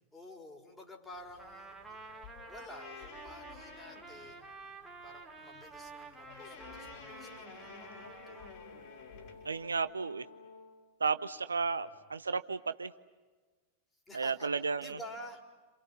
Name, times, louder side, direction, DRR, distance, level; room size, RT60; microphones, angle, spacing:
voice 1, 0.1-2.0 2.5-4.5 5.0-8.6 11.6-11.7 14.1-14.5 14.8-15.4, equal, 10° left, 2 dB, 4.4 m, -51 dB
sound 1, 1.1-9.8, left 5 dB, 45° left, 6.7 m, -53 dB
Trumpet, 1.4-8.6, right 3 dB, 5° right, 3.2 m, -50 dB
Brass instrument, 6.6-10.8, left 3 dB, 75° left, 2.8 m, -54 dB
voice 2, 9.4-10.2 11.0-12.9 14.1-15.0, right 4 dB, 75° right, 12 dB, 0.7 m, -33 dB
30.0 x 27.5 x 5.7 m, 1.3 s
figure-of-eight pair, 90°, 0 cm